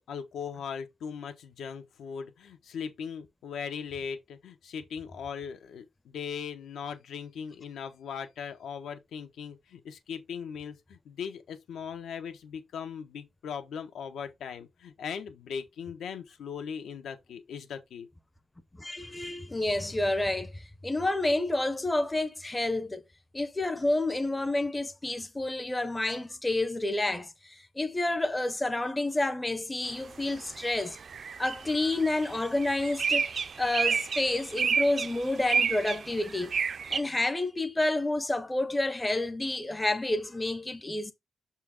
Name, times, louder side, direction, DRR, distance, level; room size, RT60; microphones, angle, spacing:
voice 1, 0.1-18.1, left 7 dB, 80° left, 1.2 m, -39 dB
voice 2, 18.8-23.0 23.3-31.0 31.4-36.5 36.9-41.1, left 2 dB, 10° left, 0.6 m, -29 dB
sound 1, 29.9-30.0 30.3-37.0, right 6 dB, 45° right, 0.4 m, -30 dB
6.4 x 4.4 x 3.5 m
wide cardioid pair, 145°, 0 cm